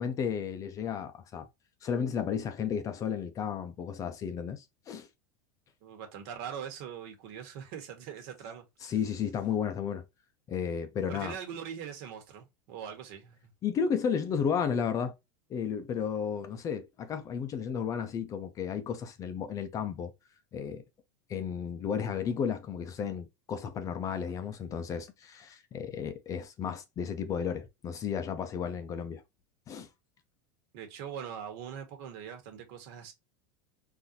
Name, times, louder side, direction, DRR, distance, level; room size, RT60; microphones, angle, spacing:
voice 1, 0.0-1.5 1.8-5.1 8.8-10.0 10.5-11.3 13.6-15.1 15.5-20.1 20.5-20.8 21.3-29.2 29.7-29.9, left 7 dB, 30° left, 0.5 m, -33 dB
voice 2, 5.8-8.9 11.1-13.4 30.7-33.1, right 8 dB, 60° right, 1.4 m, -42 dB
3.9 x 2.6 x 2.8 m
supercardioid pair, 145°, 12 cm